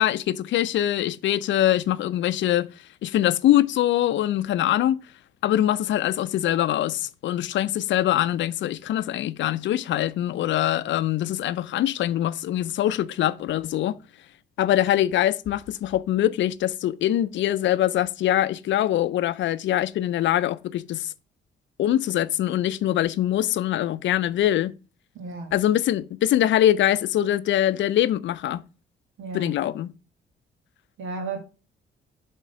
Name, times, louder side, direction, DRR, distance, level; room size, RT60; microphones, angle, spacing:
voice 1, 0.0-2.7 3.0-5.0 5.4-14.0 14.6-21.1 21.8-24.7 25.5-28.6 29.3-29.9, left 12 dB, 70° left, 0.5 m, -23 dB
voice 2, 25.1-25.5 29.2-29.5 31.0-31.4, right 4 dB, 80° right, 1.9 m, -33 dB
7.4 x 3.7 x 5.6 m
cardioid pair, 90°, 20 cm